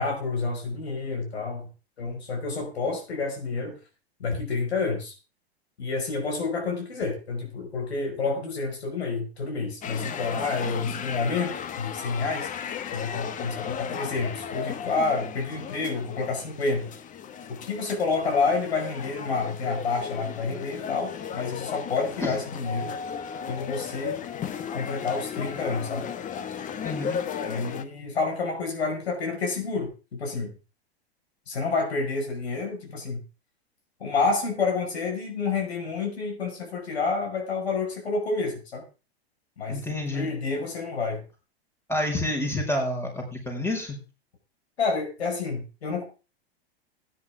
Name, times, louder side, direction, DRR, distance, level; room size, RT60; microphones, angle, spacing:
voice 1, 0.0-1.7 2.0-3.8 4.2-5.1 5.8-12.5 12.9-16.9 17.5-23.0 23.5-24.2 24.7-26.1 27.4-30.5 31.5-33.2 34.0-38.8 39.6-41.2 44.8-46.0, left 4 dB, 80° left, 3 dB, 5.5 m, -29 dB
sound 1, 9.8-27.9, left 7 dB, 25° left, 1.1 m, -35 dB
voice 2, 26.8-27.2 39.7-40.3 41.9-44.0, left 1 dB, 10° left, 1 dB, 5.1 m, -29 dB
16.0 x 10.0 x 3.7 m, 0.32 s
hypercardioid pair, 110°, 31 cm